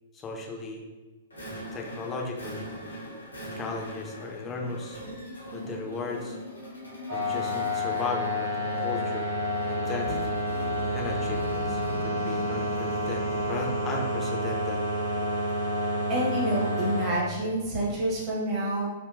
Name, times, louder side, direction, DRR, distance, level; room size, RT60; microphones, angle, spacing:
voice 1, 0.1-0.8 1.7-2.7 3.6-5.0 5.5-6.4 7.1-9.3 9.7-10.4 10.9-14.8, left 3 dB, 20° left, 0 dB, 0.5 m, -36 dB
sound 1, 1.3-13.8, equal, 80° left, 0.8 m, -41 dB
sound 2, 7.1-17.1, equal, 70° right, 1.0 m, -29 dB
voice 2, 16.1-18.9, right 1 dB, 30° right, -4 dB, 1.0 m, -28 dB
3.6 x 2.2 x 2.4 m, 1.3 s
figure-of-eight pair, 110°, 0 cm